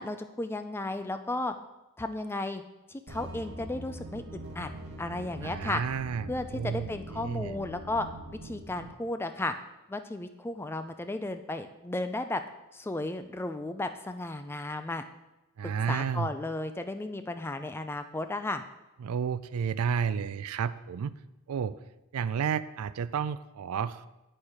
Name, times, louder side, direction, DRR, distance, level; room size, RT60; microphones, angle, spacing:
voice 1, 0.0-1.5 2.0-2.6 2.9-4.7 5.0-5.8 6.3-8.1 8.4-9.5 9.9-12.4 12.7-15.0 15.6-18.6, left 2 dB, 10° left, 9 dB, 0.3 m, -34 dB
sound 1, 3.1-8.9, right 1 dB, 50° right, 1.2 m, -43 dB
voice 2, 5.4-7.6 15.6-16.3 19.0-21.2 21.5-21.8 22.1-24.1, right 7 dB, 80° right, 15 dB, 0.4 m, -31 dB
9.7 x 4.5 x 4.9 m, 0.98 s
head